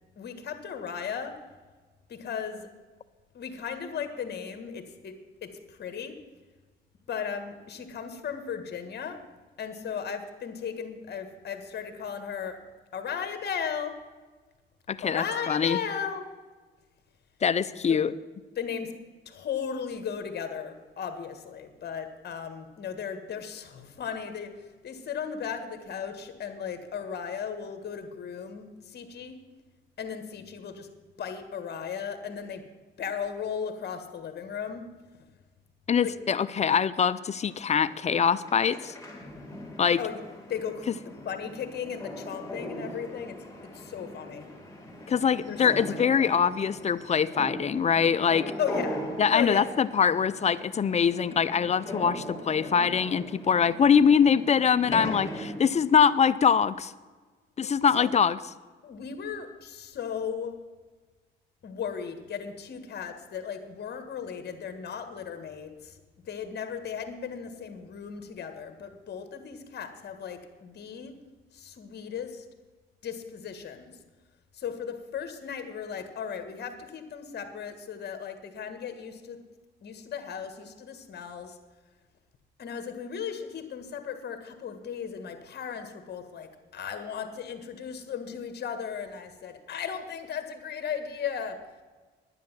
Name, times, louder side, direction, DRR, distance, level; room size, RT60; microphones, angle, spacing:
voice 1, 0.2-1.3 2.1-2.7 3.3-5.1 5.4-6.1 7.1-9.2 9.6-12.6 12.9-14.0 15.0-16.2 17.9-18.0 18.5-18.9 19.2-29.4 30.0-30.9 31.2-32.6 33.0-34.8 36.0-36.1 40.0-40.2 40.5-40.9 41.2-43.4 43.7-44.5 45.4-46.4 48.6-49.0 49.3-49.7 57.9-58.1 58.8-60.6 61.6-66.0 66.2-71.1 71.5-72.4 73.0-74.0 74.5-79.4 79.8-81.6 82.6-91.6, left 7 dB, 55° left, 7 dB, 1.7 m, -36 dB
voice 2, 14.9-15.8 17.4-18.1 35.9-38.9 39.8-40.0 45.1-48.5 49.2-56.9 57.6-58.4, left 7 dB, 35° left, 15 dB, 0.5 m, -23 dB
sound 1, 37.4-55.6, left 1 dB, 15° left, 3.4 m, -40 dB
10.5 x 10.0 x 7.3 m, 1.4 s
cardioid pair, 90°, 20 cm